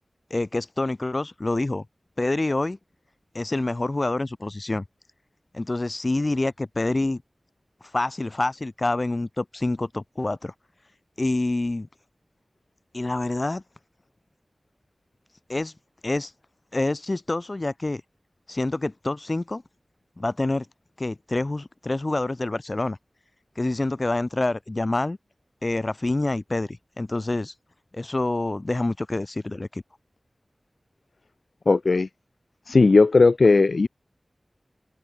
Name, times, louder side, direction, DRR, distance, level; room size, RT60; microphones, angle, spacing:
voice 1, 0.3-1.8 2.2-2.8 3.3-4.8 5.5-7.2 7.9-10.5 11.2-11.9 12.9-13.6 15.5-15.7 16.0-16.3 16.7-18.0 18.5-19.6 20.2-20.6 21.0-23.0 23.6-25.2 25.6-27.5 27.9-29.8, left 2 dB, 40° left, 4.9 m, -27 dB
voice 2, 31.7-32.1 32.7-33.9, left 3 dB, 75° left, 1.0 m, -17 dB
wide cardioid pair, 65°, 0 cm